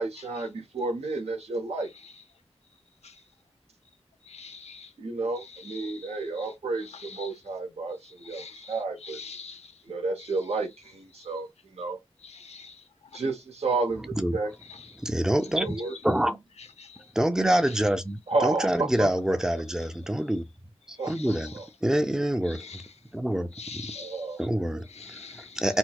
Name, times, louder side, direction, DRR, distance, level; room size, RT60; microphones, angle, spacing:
voice 1, 0.0-1.9 5.0-9.2 9.9-12.0 13.1-14.5 15.6-16.0 18.3-19.1 21.0-21.1 21.5-21.7 23.9-24.8, right 3 dB, 75° right, 0.9 m, -31 dB
voice 2, 4.3-4.9 8.3-8.5 9.3-9.6 12.5-12.6 23.6-24.1 25.0-25.4, left 5 dB, 85° left, 0.5 m, -42 dB
voice 3, 15.0-15.8 16.0-16.4 17.2-20.4 20.9-21.5 21.8-22.8 23.1-23.9 24.4-24.9 25.6-25.8, right 1 dB, 5° right, 0.5 m, -26 dB
4.3 x 2.0 x 2.3 m
wide cardioid pair, 60°, 11 cm